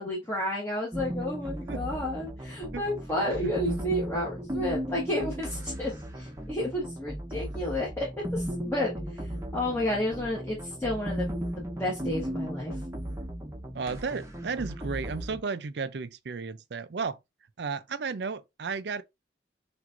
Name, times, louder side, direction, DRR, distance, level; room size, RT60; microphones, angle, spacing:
voice 1, 0.0-8.1 8.3-11.3 11.6-12.8, left 1 dB, 15° left, 1.2 m, -31 dB
sound 1, 0.9-15.4, equal, 15° right, 0.9 m, -36 dB
voice 2, 3.3-3.8 13.7-17.2 17.6-19.0, right 5 dB, 65° right, 0.5 m, -34 dB
5.9 x 2.6 x 2.5 m
head